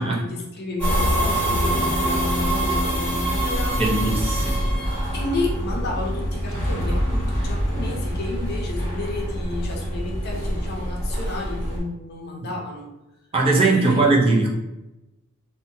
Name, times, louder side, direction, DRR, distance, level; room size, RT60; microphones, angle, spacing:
voice 1, 0.0-4.0 5.1-12.9 13.7-14.2, left 2 dB, 50° left, -1 dB, 0.6 m, -31 dB
sound 1, 0.8-11.8, equal, 10° left, 1.5 m, -25 dB
sound 2, 1.6-9.4, equal, 25° left, 0.9 m, -37 dB
voice 2, 3.8-4.6 13.3-14.5, right 3 dB, 25° right, -3 dB, 0.5 m, -19 dB
2.7 x 2.2 x 2.6 m, 0.95 s
head